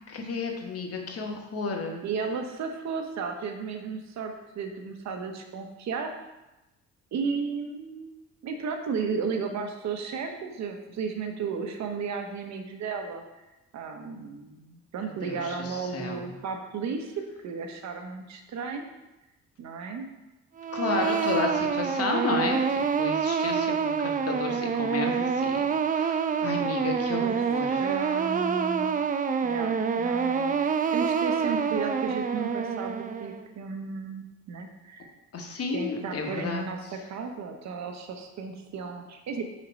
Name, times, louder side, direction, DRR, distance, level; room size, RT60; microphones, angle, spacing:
voice 1, 0.1-2.0 15.2-16.3 20.7-25.6 25.9-27.9 35.3-36.6, left 4 dB, 50° left, 2 dB, 1.2 m, -32 dB
voice 2, 2.0-6.1 7.1-13.2 13.7-18.8 19.6-20.1 27.2-27.4 27.7-29.0 29.4-35.1 35.7-39.4, right 5 dB, 65° right, 5 dB, 0.8 m, -34 dB
sound 1, 20.6-33.4, right 6 dB, 30° right, 0.4 m, -27 dB
4.5 x 4.2 x 5.0 m, 1.0 s
cardioid pair, 90°, 30 cm